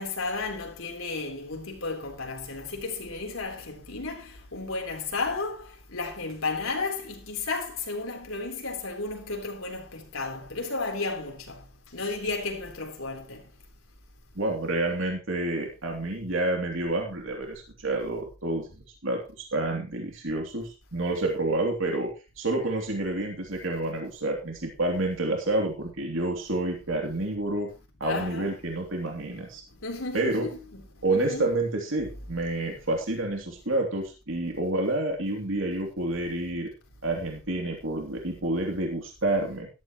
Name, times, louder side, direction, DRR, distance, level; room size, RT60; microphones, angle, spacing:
voice 1, 0.0-11.7 11.9-13.4 28.0-28.5 29.8-31.5 32.0-32.6, left 3 dB, 90° left, 3.9 m, -33 dB
voice 2, 14.3-27.7 28.0-29.6 30.1-30.5 31.0-36.7 37.0-39.7, right 2 dB, 70° right, 3.0 m, -29 dB
14.0 x 13.0 x 3.1 m
head